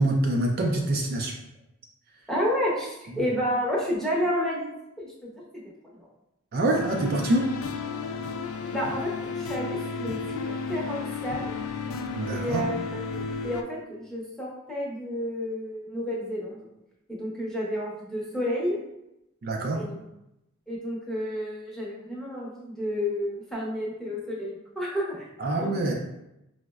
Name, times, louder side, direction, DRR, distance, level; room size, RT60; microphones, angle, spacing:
voice 1, 0.0-1.4 3.1-3.3 6.5-7.6 12.1-12.7 19.4-19.8 25.4-25.9, right 1 dB, 45° right, 0 dB, 0.4 m, -25 dB
voice 2, 2.3-5.4 5.9-6.1 8.7-11.5 12.3-16.6 17.1-18.8 19.7-20.0 20.7-25.3 25.6-25.9, equal, ahead, -5 dB, 0.6 m, -31 dB
sound 1, 6.7-13.6, left 4 dB, 70° left, 0.3 m, -33 dB
4.7 x 2.0 x 2.3 m, 0.89 s
head